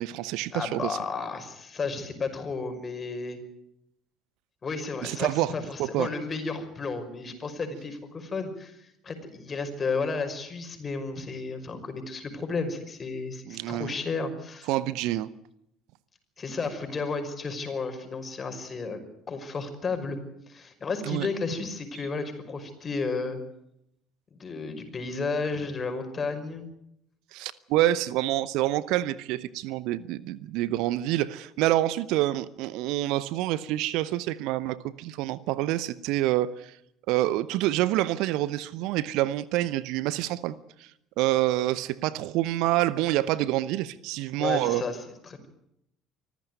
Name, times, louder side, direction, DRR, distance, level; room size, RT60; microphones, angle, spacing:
voice 1, 0.0-1.0 5.0-5.5 5.8-6.1 13.5-13.9 14.7-15.3 21.1-21.3 27.3-36.7 37.1-40.9 41.2-44.8, right 15 dB, 60° right, 19 dB, 0.9 m, -27 dB
voice 2, 0.5-3.4 4.6-14.7 16.4-19.0 19.3-20.2 20.5-23.4 24.4-26.7 44.4-45.5, left 4 dB, 30° left, 7 dB, 5.6 m, -33 dB
25.5 x 14.5 x 9.5 m, 0.77 s
figure-of-eight pair, 60°, 0 cm